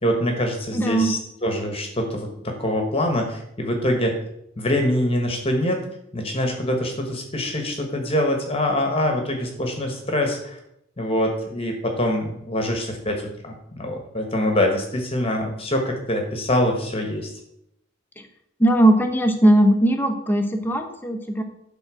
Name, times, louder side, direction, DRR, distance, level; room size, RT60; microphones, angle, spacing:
voice 1, 0.0-4.1 4.6-5.8 6.1-10.6 11.0-17.3, left 1 dB, 30° left, 3 dB, 1.4 m, -24 dB
voice 2, 0.7-1.1 18.2-18.3 18.6-21.4, right 1 dB, 10° left, 5 dB, 1.0 m, -19 dB
11.5 x 3.9 x 6.3 m, 0.79 s
head